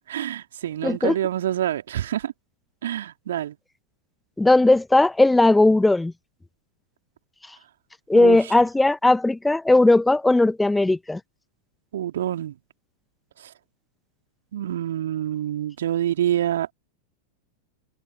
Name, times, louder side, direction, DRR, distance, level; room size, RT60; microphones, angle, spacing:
voice 1, 0.1-2.3 2.8-3.6 8.1-8.4 11.9-12.5 14.5-16.7, right 11 dB, 60° right, 3.6 m, -26 dB
voice 2, 0.8-1.2 4.4-6.1 8.1-11.2, left 2 dB, 5° left, 1.1 m, -18 dB
figure-of-eight pair, 90°, 0 cm